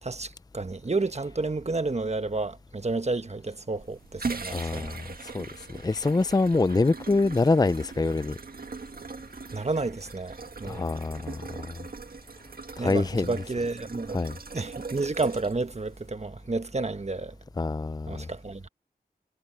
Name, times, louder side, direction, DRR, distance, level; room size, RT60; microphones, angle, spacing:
voice 1, 0.0-5.0 9.5-10.9 12.8-17.4 18.1-18.7, right 3 dB, 40° right, 1.3 m, -31 dB
sound 1, 3.7-16.1, right 4 dB, 65° right, 1.7 m, -40 dB
voice 2, 4.5-8.4 10.6-11.9 12.8-13.3 14.1-14.4 17.6-18.3, left 3 dB, 25° left, 0.5 m, -26 dB
cardioid pair, 45°, 16 cm